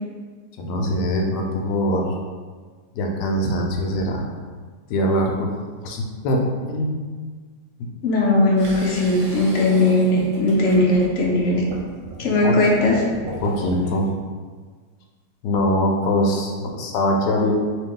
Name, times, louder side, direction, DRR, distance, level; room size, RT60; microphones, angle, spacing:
voice 1, 0.6-2.1 2.9-4.3 4.9-5.5 5.8-7.0 12.4-12.6 13.4-14.1 15.4-17.5, equal, 85° left, 1 dB, 1.2 m, -22 dB
voice 2, 8.0-11.7 12.2-13.0, left 2 dB, 60° left, -3 dB, 0.8 m, -18 dB
sound 1, 8.6-13.9, right 1 dB, 80° right, 1.4 m, -36 dB
3.0 x 2.8 x 3.6 m, 1.5 s
omnidirectional pair, 1.8 m